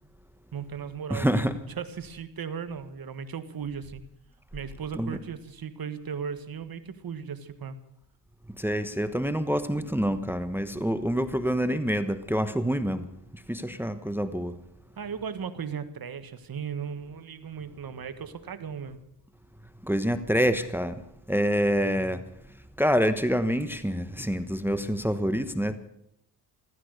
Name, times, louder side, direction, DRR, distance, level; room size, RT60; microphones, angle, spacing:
voice 1, 0.5-1.4 1.8-4.0 4.5-7.8 15.0-19.0, right 7 dB, 50° right, 11 dB, 1.6 m, -36 dB
voice 2, 1.1-1.5 5.0-5.2 8.5-13.1 13.3-14.6 19.8-21.0 21.3-25.8, equal, 5° right, 10 dB, 1.1 m, -27 dB
15.0 x 14.5 x 6.6 m, 0.77 s
cardioid pair, 75°, 44 cm